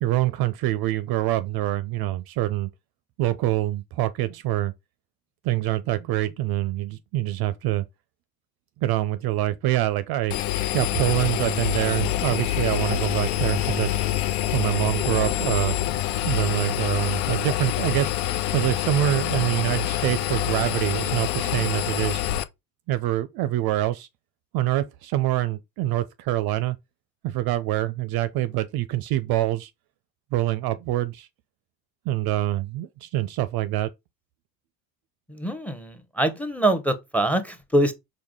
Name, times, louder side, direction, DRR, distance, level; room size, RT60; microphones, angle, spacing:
voice 1, 0.0-2.7 3.2-4.7 5.4-7.8 8.8-10.3 10.7-14.0 14.5-15.8 16.3-18.1 18.5-22.2 22.9-24.1 24.5-26.8 27.2-29.7 30.3-31.3 32.1-33.9, right 15 dB, 50° right, 0.5 m, -25 dB
Engine, 10.3-22.4, left 13 dB, 75° left, 0.5 m, -26 dB
voice 2, 35.3-37.9, right 1 dB, 5° left, 0.7 m, -24 dB
4.6 x 2.2 x 3.6 m
hypercardioid pair, 55°, 49 cm